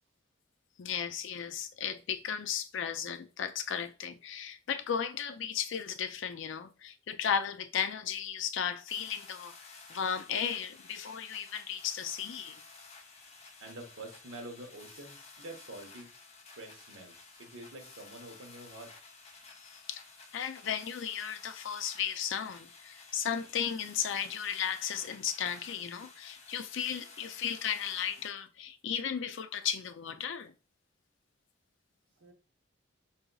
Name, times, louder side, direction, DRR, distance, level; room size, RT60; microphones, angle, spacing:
voice 1, 0.8-9.5 9.9-12.5 19.9-20.0 20.3-30.5, left 8 dB, 60° left, 0.4 m, -35 dB
sound 1, 8.9-28.3, left 4 dB, 30° left, 0.9 m, -53 dB
voice 2, 13.6-16.1 16.6-18.9 32.2-32.3, right 2 dB, 70° right, 1.1 m, -47 dB
4.0 x 3.9 x 2.3 m
head